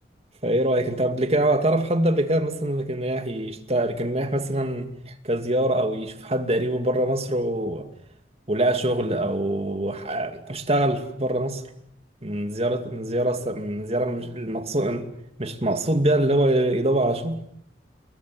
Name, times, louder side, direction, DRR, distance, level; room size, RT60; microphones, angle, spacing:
voice 1, 0.4-7.9 8.5-11.6 12.2-15.0 15.4-17.4, right 1 dB, 35° right, 2.4 m, -24 dB
29.0 x 22.0 x 7.8 m
head